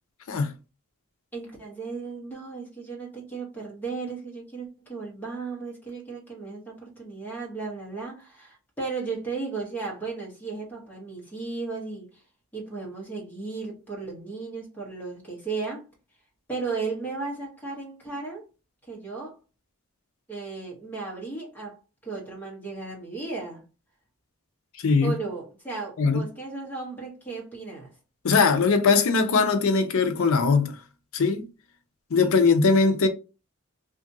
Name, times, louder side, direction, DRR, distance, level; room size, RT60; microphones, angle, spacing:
voice 1, 1.3-12.2 12.5-15.8 16.5-18.4 18.9-19.4 20.3-23.6 25.0-27.9, right 4 dB, 10° left, 1.1 m, -35 dB
voice 2, 24.8-25.1 26.0-26.2 28.2-30.8 31.1-31.4 32.1-33.1, left 4 dB, 65° left, 0.5 m, -20 dB
2.8 x 2.4 x 2.6 m
head